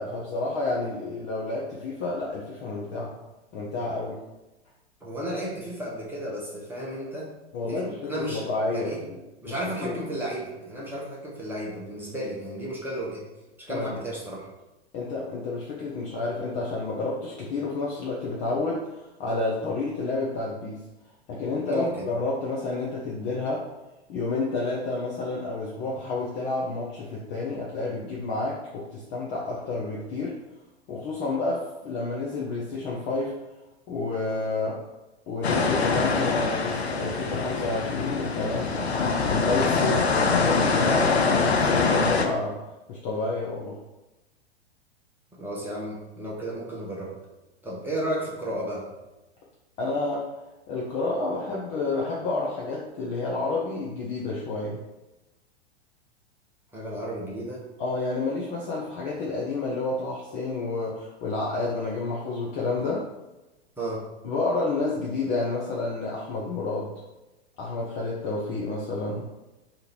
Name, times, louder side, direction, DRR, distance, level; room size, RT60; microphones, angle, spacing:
voice 1, 0.0-3.2 3.5-4.2 7.5-9.2 9.5-10.0 13.7-14.0 14.9-20.8 21.3-23.7 24.1-30.4 30.9-33.3 33.9-34.8 35.3-38.9 39.3-42.6 42.9-43.8 49.8-50.3 50.7-54.8 57.8-63.1 64.2-66.9 67.6-69.3, left 3 dB, 20° left, -4 dB, 0.4 m, -30 dB
voice 2, 5.0-7.3 7.7-9.0 9.4-13.3 13.7-14.5 21.6-22.1 39.7-39.9 45.4-47.2 47.6-48.8 56.7-57.6 63.8-64.1, right 1 dB, 5° right, -5 dB, 0.8 m, -33 dB
sound 1, 35.4-42.3, left 4 dB, 75° left, 0.6 m, -24 dB
2.7 x 2.6 x 4.2 m, 1.0 s
figure-of-eight pair, 95°, 33 cm